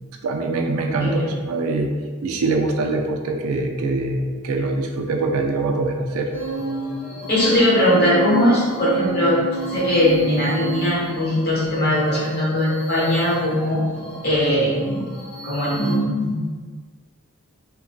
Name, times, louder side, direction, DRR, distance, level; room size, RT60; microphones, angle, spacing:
voice 1, 0.2-1.9 2.2-6.3, right 3 dB, 75° right, 3 dB, 0.4 m, -23 dB
sound 1, 6.3-16.0, right 3 dB, 70° left, 1.2 m, -32 dB
voice 2, 7.3-9.4 9.7-13.8 14.2-15.0 15.4-16.5, left 1 dB, 50° left, -6 dB, 0.9 m, -20 dB
2.9 x 2.2 x 2.6 m, 1.5 s
head